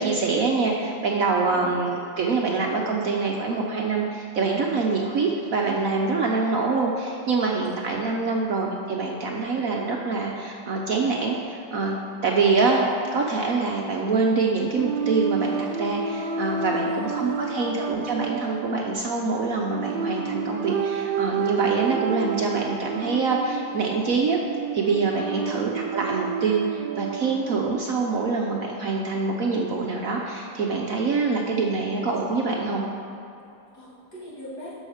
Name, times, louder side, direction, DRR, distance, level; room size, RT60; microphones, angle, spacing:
voice 1, 0.0-12.0 12.2-24.4 24.7-32.8, right 4 dB, 60° right, -1 dB, 1.0 m, -25 dB
sound 1, 14.7-27.7, right 6 dB, 85° right, 1.4 m, -30 dB
voice 2, 16.9-17.9 25.4-25.7 33.7-34.8, equal, 60° left, -9 dB, 3.4 m, -41 dB
12.0 x 6.2 x 5.0 m, 2.7 s
omnidirectional pair, 2.0 m